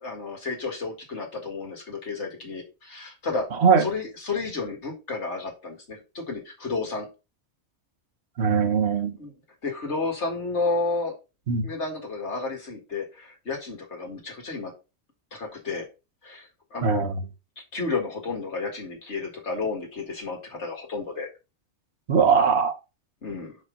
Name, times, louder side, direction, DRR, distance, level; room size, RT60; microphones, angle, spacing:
voice 1, 0.0-3.5 3.8-7.1 9.2-9.3 9.6-11.1 11.6-14.7 15.3-15.9 16.2-17.0 17.7-21.3 23.2-23.6, left 3 dB, 55° left, 2.2 m, -31 dB
voice 2, 8.4-9.2 11.5-11.7 16.8-17.1 22.1-22.7, right 6 dB, 55° right, 1.2 m, -20 dB
5.3 x 5.2 x 5.0 m
omnidirectional pair, 1.4 m